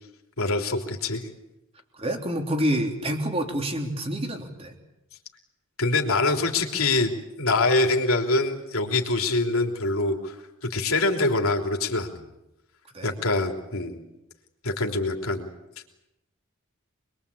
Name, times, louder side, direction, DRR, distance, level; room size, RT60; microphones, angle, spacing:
voice 1, 0.4-1.2 5.8-10.4 10.7-12.3 13.0-14.0 14.6-15.5, left 2 dB, 80° left, 3 dB, 3.4 m, -24 dB
voice 2, 1.9-4.7 12.9-13.1, equal, 30° right, 4 dB, 3.3 m, -28 dB
26.0 x 22.0 x 8.6 m, 0.89 s
head